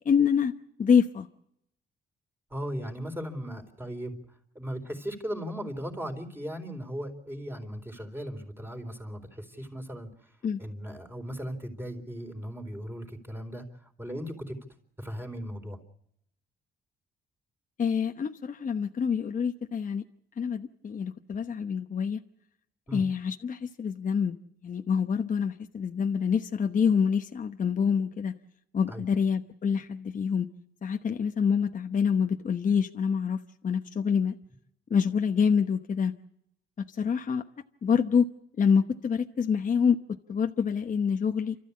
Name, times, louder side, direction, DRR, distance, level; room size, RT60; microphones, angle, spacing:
voice 1, 0.0-0.5 0.8-1.3 10.4-10.6 17.8-20.0 20.4-22.2 22.9-24.4 24.6-28.3 28.7-30.5 30.8-34.4 34.9-36.1 37.0-37.4 37.8-38.2 38.6-40.0 40.3-41.6, left 6 dB, 40° left, 6 dB, 1.1 m, -26 dB
voice 2, 2.5-4.2 4.5-10.1 10.6-13.6 14.0-14.6 15.0-15.8 22.9-23.0 28.9-29.0, equal, 10° right, 4 dB, 3.9 m, -37 dB
29.0 x 13.5 x 8.6 m, 0.76 s
cardioid pair, 90°, 20 cm